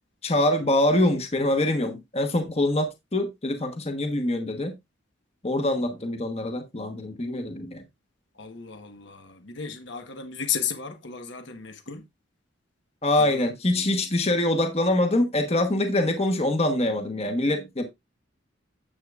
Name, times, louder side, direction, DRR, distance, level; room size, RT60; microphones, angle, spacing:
voice 1, 0.2-4.7 5.4-7.8 13.0-17.8, left 1 dB, 35° left, 1.2 m, -24 dB
voice 2, 8.4-9.2 9.6-12.0, left 7 dB, 65° left, 1.3 m, -33 dB
10.0 x 7.8 x 2.4 m
head